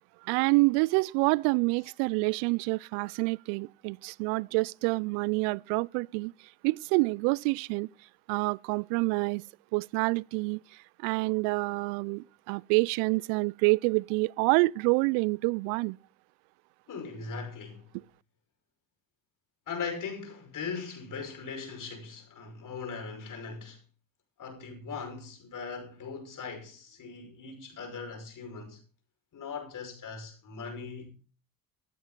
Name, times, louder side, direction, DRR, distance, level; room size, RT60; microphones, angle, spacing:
voice 1, 0.2-6.3 6.6-7.9 8.3-9.4 9.7-16.0, right 27 dB, 70° right, 0.5 m, -27 dB
voice 2, 16.9-18.0 19.7-23.8 24.4-28.8 29.3-31.1, left 5 dB, 50° left, 5.5 m, -39 dB
15.5 x 12.5 x 4.0 m
hypercardioid pair, 60°, 40 cm